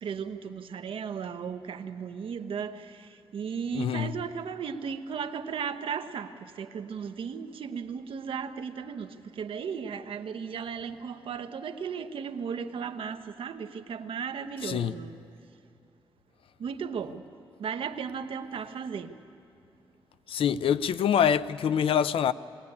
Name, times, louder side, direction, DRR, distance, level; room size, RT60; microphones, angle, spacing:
voice 1, 0.0-15.2 16.6-17.2 17.6-19.2, right 6 dB, 75° right, 0.9 m, -36 dB
voice 2, 3.7-4.1 14.6-14.9 20.3-22.3, left 8 dB, 80° left, 0.5 m, -25 dB
20.0 x 17.5 x 9.9 m
wide cardioid pair, 165°, 9 cm